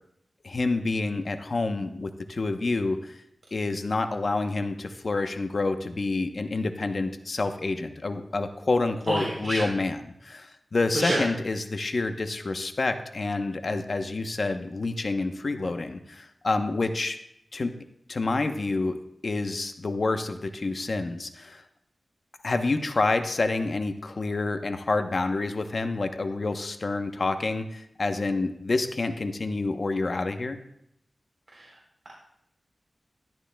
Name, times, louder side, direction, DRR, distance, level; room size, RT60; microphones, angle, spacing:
voice 1, 0.4-3.2 3.5-17.2 17.5-17.7 18.1-19.0 19.2-21.6 22.4-30.6, left 3 dB, 55° left, 7 dB, 0.8 m, -28 dB
voice 2, 9.1-9.6 10.9-11.2 31.5-31.6, right 1 dB, 45° right, -6 dB, 3.5 m, -28 dB
13.5 x 11.0 x 2.2 m, 0.76 s
wide cardioid pair, 75°, 0 cm